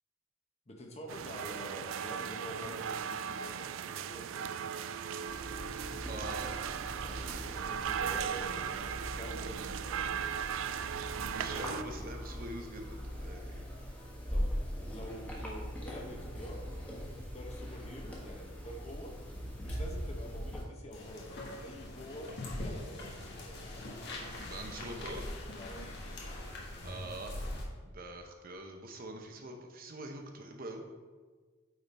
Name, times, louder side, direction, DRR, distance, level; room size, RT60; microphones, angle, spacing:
voice 1, 0.7-4.6 7.4-10.1 14.3-14.5 14.9-19.2 19.6-23.8 25.5-25.9, equal, 35° left, 2 dB, 0.9 m, -47 dB
sound 1, 1.1-11.8, right 8 dB, 70° right, 0.3 m, -37 dB
sound 2, 5.3-20.6, equal, 5° left, 1.2 m, -41 dB
voice 2, 6.0-6.5 8.0-8.6 11.2-13.7 24.4-25.3 26.8-27.5 27.9-30.8, right 1 dB, 45° right, 3 dB, 0.8 m, -44 dB
sound 3, 20.9-27.6, left 1 dB, 55° left, 1.3 m, -42 dB
8.7 x 3.8 x 4.2 m, 1.4 s
head